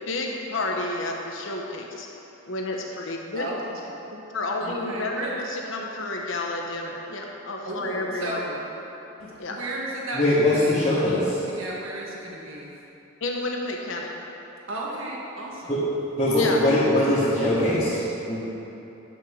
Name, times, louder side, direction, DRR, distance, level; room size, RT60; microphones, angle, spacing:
voice 1, 0.1-2.1 2.5-3.5 4.3-8.6 9.4-9.6 13.2-14.2 16.3-16.6 17.2-17.3, left 2 dB, 65° left, 0 dB, 1.0 m, -30 dB
voice 2, 3.3-3.8 4.6-5.4 7.6-8.5 9.2-10.8 11.5-12.7 14.7-15.8 16.9-17.3, right 1 dB, 70° right, -3 dB, 1.7 m, -34 dB
voice 3, 10.1-11.4 15.7-15.8 16.2-18.4, left 1 dB, 20° left, -13 dB, 2.2 m, -21 dB
11.0 x 6.3 x 6.4 m, 3.0 s
head